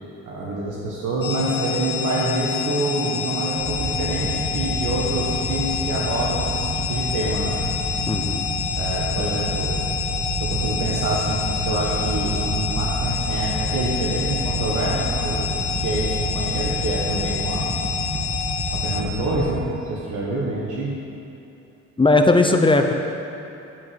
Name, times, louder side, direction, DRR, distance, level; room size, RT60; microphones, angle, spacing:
voice 1, 0.3-7.6 8.8-9.8 10.4-15.5 15.8-17.7 18.7-21.0, right 2 dB, 80° right, -5 dB, 1.5 m, -26 dB
sound 1, 1.2-19.0, left 6 dB, 35° left, 1.8 m, -27 dB
sound 2, 3.6-19.5, right 1 dB, 25° right, 2.4 m, -29 dB
voice 2, 8.1-8.4 22.0-22.9, left 2 dB, 15° left, 4 dB, 0.7 m, -17 dB
9.6 x 4.9 x 7.7 m, 2.9 s
cardioid pair, 90°, 30 cm